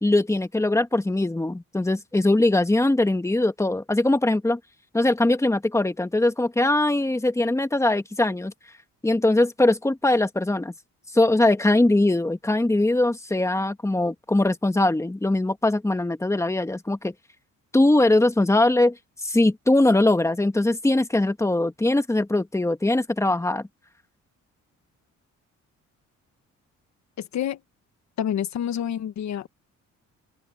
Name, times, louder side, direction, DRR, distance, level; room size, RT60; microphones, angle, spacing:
voice 1, 0.0-4.6 4.9-8.5 9.0-10.7 11.1-17.1 17.7-19.0 19.2-23.6, left 2 dB, 10° left, 1.8 m, -21 dB
voice 2, 27.2-27.6 28.2-29.5, left 10 dB, 65° left, 1.3 m, -28 dB
cardioid pair, 90°, 30 cm